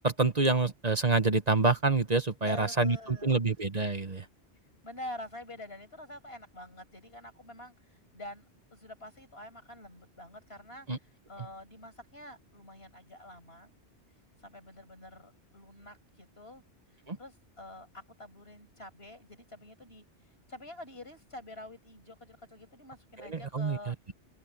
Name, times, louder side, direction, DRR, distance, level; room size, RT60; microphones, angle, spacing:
voice 1, 0.0-4.2 10.9-11.0 17.1-17.2 23.3-23.9, right 3 dB, 35° right, 1.3 m, -27 dB
voice 2, 2.5-3.4 4.8-8.5 8.7-13.8 14.4-16.6 17.2-20.1 20.5-24.0, left 1 dB, 60° left, 7.2 m, -47 dB
open air
omnidirectional pair, 1.2 m